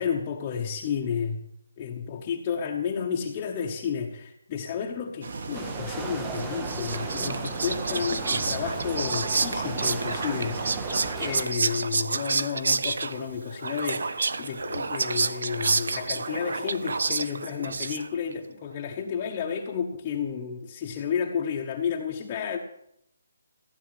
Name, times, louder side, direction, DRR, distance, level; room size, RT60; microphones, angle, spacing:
voice 1, 0.0-1.4 1.8-22.6, left 7 dB, 15° left, -1 dB, 1.1 m, -31 dB
sound 1, 5.2-11.1, right 3 dB, 40° right, 1.7 m, -37 dB
sound 2, 5.5-11.4, right 4 dB, 5° right, 0.7 m, -37 dB
Whispering, 6.4-18.3, right 4 dB, 60° right, 1.0 m, -29 dB
16.0 x 9.4 x 8.7 m, 0.74 s
hypercardioid pair, 180°, 0 cm